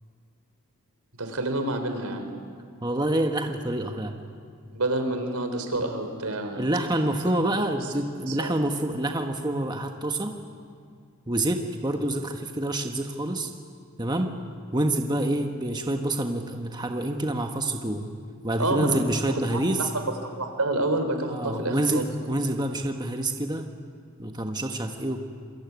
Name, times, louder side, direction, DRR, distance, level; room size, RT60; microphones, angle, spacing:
voice 1, 1.2-2.3 4.7-6.7 7.2-7.3 7.8-7.9 8.3-8.5 18.6-19.0 19.3-22.1, right 2 dB, 85° right, 7 dB, 3.9 m, -28 dB
voice 2, 2.8-4.2 6.6-10.3 11.3-13.5 14.0-14.3 14.7-18.1 18.4-19.9 21.3-23.7 24.2-25.2, right 1 dB, 20° right, 4 dB, 1.4 m, -27 dB
27.5 x 23.0 x 9.5 m, 2.2 s
head